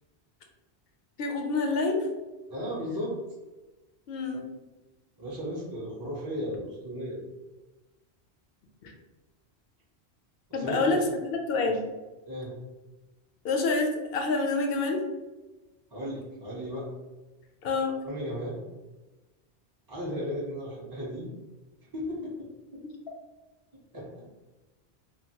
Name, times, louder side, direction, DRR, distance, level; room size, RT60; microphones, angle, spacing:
voice 1, 1.2-2.1 4.1-4.5 8.8-8.9 10.5-11.0 11.5-11.8 13.4-15.0 17.6-18.0, left 3 dB, 65° left, 2 dB, 0.7 m, -27 dB
voice 2, 2.5-3.1 5.2-7.2 10.5-11.1 11.7-11.8 12.3-12.5 15.9-16.9 18.0-18.6 19.9-21.3 21.9-22.5 23.9-24.1, equal, 25° right, -6 dB, 0.5 m, -35 dB
2.9 x 2.4 x 2.7 m, 1.1 s
omnidirectional pair, 1.1 m